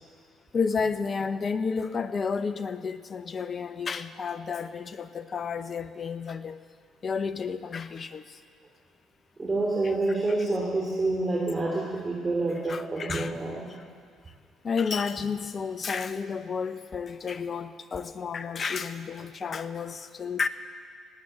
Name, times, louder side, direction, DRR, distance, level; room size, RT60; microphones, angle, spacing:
voice 1, 0.5-6.6 7.0-8.4 12.7-13.3 13.8-13.9 14.6-20.5, left 5 dB, 45° left, 12 dB, 0.8 m, -31 dB
voice 2, 9.4-13.6, right 2 dB, 30° right, -3 dB, 3.0 m, -28 dB
19.0 x 8.6 x 8.0 m, 2.1 s
hypercardioid pair, 55°, 0 cm